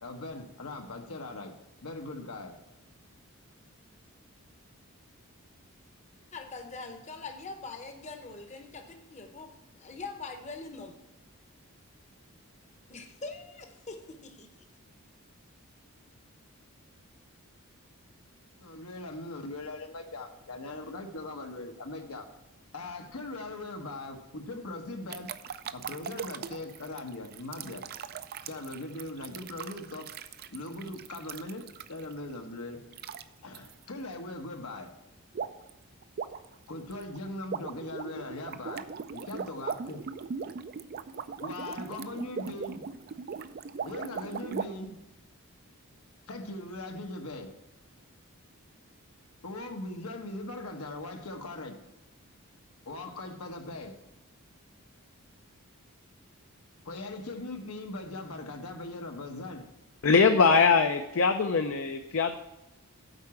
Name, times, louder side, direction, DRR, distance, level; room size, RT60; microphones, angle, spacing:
voice 1, 0.0-1.5 1.8-2.6 18.6-22.3 22.7-25.3 25.7-27.8 28.5-30.1 30.5-32.8 33.4-34.9 36.7-40.1 41.4-42.8 43.8-45.0 46.3-47.5 49.4-51.8 52.9-53.9 56.8-59.6, left 2 dB, 80° left, 4 dB, 1.1 m, -40 dB
voice 2, 6.3-9.5 9.7-11.0 12.9-14.5, left 3 dB, 30° left, 5 dB, 0.8 m, -43 dB
sound 1, 25.1-32.1 32.9-33.2 33.5-33.7 35.3-35.7 36.0-44.7, right 6 dB, 45° right, 0.4 m, -39 dB
voice 3, 60.0-62.4, left 5 dB, 60° left, 6 dB, 0.5 m, -22 dB
8.0 x 4.8 x 7.1 m, 0.91 s
head